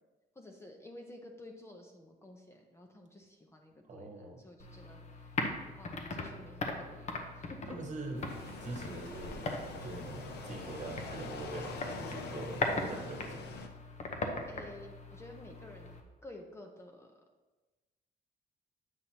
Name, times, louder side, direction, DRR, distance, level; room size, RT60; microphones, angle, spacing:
voice 1, 0.4-5.2 5.8-7.1 7.3-7.8 14.5-16.0 16.2-17.1, left 2 dB, 15° left, 2 dB, 0.6 m, -51 dB
voice 2, 3.9-4.4 7.7-8.2 8.6-9.5 9.8-13.4, right 2 dB, 45° right, 1 dB, 1.2 m, -43 dB
sound 1, 4.6-16.0, left 2 dB, 45° left, 0.8 m, -40 dB
sound 2, 8.2-13.7, right 6 dB, 85° right, 0.6 m, -51 dB
sound 3, 8.3-13.7, left 5 dB, 85° left, 0.7 m, -45 dB
7.9 x 5.8 x 2.9 m, 1.2 s
cardioid pair, 125°, 17 cm